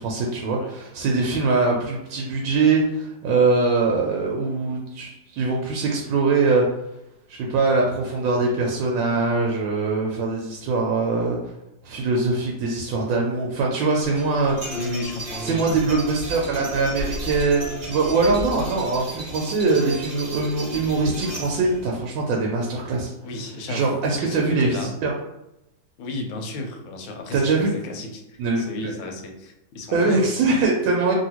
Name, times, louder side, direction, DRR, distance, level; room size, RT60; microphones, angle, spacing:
voice 1, 0.0-6.6 7.3-11.4 11.8-14.7 15.4-23.1 23.7-25.1 27.3-27.7 28.4-28.9 29.9-31.1, right 3 dB, 85° right, -1 dB, 1.3 m, -22 dB
sound 1, 14.0-21.8, right 1 dB, 40° right, 0.8 m, -34 dB
voice 2, 14.7-15.6 23.2-23.9 24.2-24.9 26.0-30.3, left 2 dB, 85° left, 3 dB, 1.3 m, -33 dB
3.0 x 2.7 x 2.8 m, 0.88 s
omnidirectional pair, 2.0 m